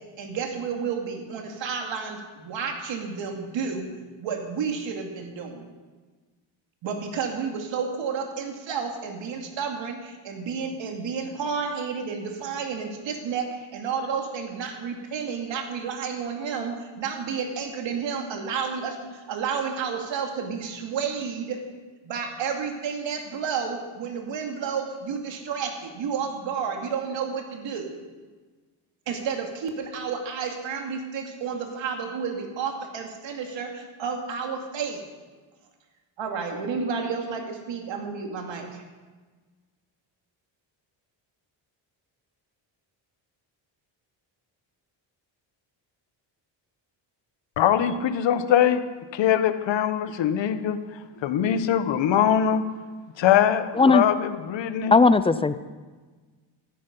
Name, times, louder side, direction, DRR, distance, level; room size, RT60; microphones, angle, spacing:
voice 1, 0.0-3.9 4.2-5.7 6.8-21.7 22.0-27.9 29.1-35.0 36.2-38.8, right 6 dB, 70° right, 2 dB, 2.6 m, -31 dB
voice 2, 47.6-48.8 49.1-50.8 51.2-52.6 53.2-55.0, left 9 dB, 70° left, 10 dB, 1.2 m, -22 dB
voice 3, 54.9-55.6, left 3 dB, 15° left, 14 dB, 0.4 m, -17 dB
15.0 x 14.0 x 5.4 m, 1.4 s
cardioid pair, 135°, 46 cm